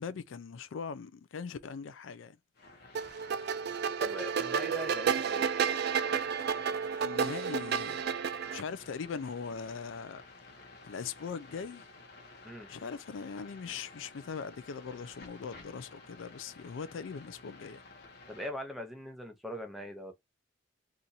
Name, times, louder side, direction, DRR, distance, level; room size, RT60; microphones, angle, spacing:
voice 1, 0.0-2.4 7.0-8.0 8.5-10.2 10.8-11.9 12.7-17.8, left 5 dB, 80° left, 0.4 m, -40 dB
sound 1, 2.5-18.5, left 3 dB, 55° left, 1.0 m, -53 dB
sound 2, 2.9-8.6, right 7 dB, 55° right, 0.3 m, -31 dB
voice 2, 4.0-5.5 12.4-12.7 18.3-20.1, left 1 dB, ahead, 0.7 m, -41 dB
2.8 x 2.5 x 3.9 m
head